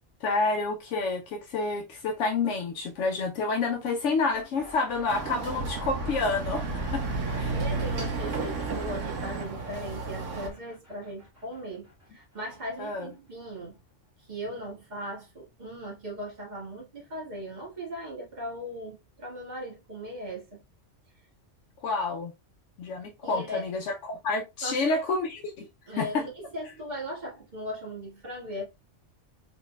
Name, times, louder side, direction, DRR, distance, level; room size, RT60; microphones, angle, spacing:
voice 1, 0.2-7.0 7.3-7.6 12.8-13.1 21.8-22.3 22.8-25.7 25.9-26.2, left 3 dB, 75° left, 0.9 m, -29 dB
sound 1, 4.3-14.1, equal, 10° right, 2.2 m, -49 dB
Chatter / Car passing by / Motorcycle, 5.1-10.5, right 3 dB, 85° right, 1.3 m, -32 dB
voice 2, 7.3-13.8 14.2-20.6 23.2-23.7 24.6-25.0 25.9-28.6, equal, 35° right, 1.9 m, -38 dB
3.9 x 3.9 x 2.3 m
omnidirectional pair, 1.3 m